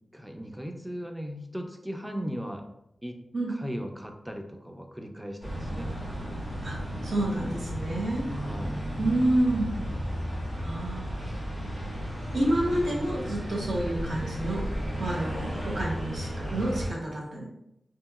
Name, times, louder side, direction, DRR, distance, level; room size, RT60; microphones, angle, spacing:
voice 1, 0.1-2.6 3.0-3.2 3.5-5.9 8.3-8.9, equal, 10° right, 4 dB, 0.4 m, -37 dB
sound 1, 5.4-16.9, equal, 85° right, 1.4 m, -34 dB
voice 2, 7.0-8.3 9.0-9.8 10.6-11.3 11.7-11.8 12.3-14.6 15.0-17.5, right 1 dB, 65° right, -2 dB, 0.8 m, -29 dB
2.8 x 2.7 x 2.3 m, 0.81 s
wide cardioid pair, 90°, 0 cm